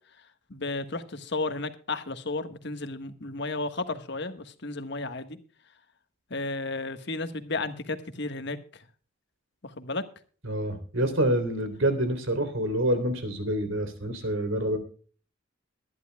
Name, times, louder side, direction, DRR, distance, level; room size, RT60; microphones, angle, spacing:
voice 1, 0.5-5.4 6.3-8.6 9.8-10.0, left 3 dB, 60° left, 1.4 m, -33 dB
voice 2, 10.4-14.8, right 1 dB, 85° right, 3.4 m, -27 dB
22.0 x 11.0 x 2.3 m
head